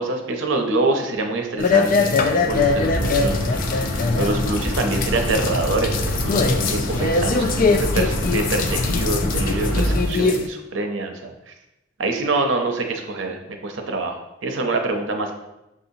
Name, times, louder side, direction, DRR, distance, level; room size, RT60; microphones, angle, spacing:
voice 1, 0.0-11.5 12.0-15.3, right 2 dB, 85° right, 4 dB, 0.7 m, -25 dB
sound 1, 1.6-10.5, left 4 dB, 45° left, 0.3 m, -22 dB
sound 2, 2.5-10.0, left 1 dB, 90° left, 0.7 m, -25 dB
6.3 x 2.8 x 2.7 m, 0.94 s
head